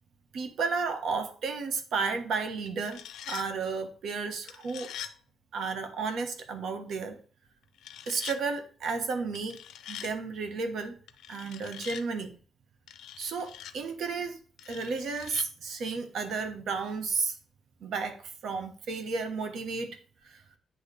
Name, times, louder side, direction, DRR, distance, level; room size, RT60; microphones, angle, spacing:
voice 1, 0.3-3.0 3.3-4.9 5.5-7.2 8.1-9.6 9.9-11.0 11.3-12.4 13.2-14.4 14.7-17.4 17.8-20.0 20.2-20.4, right 4 dB, 70° right, 7 dB, 1.3 m, -33 dB
sound 1, 2.7-3.5 4.5-5.1 7.8-8.4 9.3-10.1 11.1-12.0 12.9-13.7 14.6-15.5, left 10 dB, 85° left, 0.6 m, -43 dB
8.8 x 3.3 x 6.7 m, 0.41 s
cardioid pair, 125°, 0 cm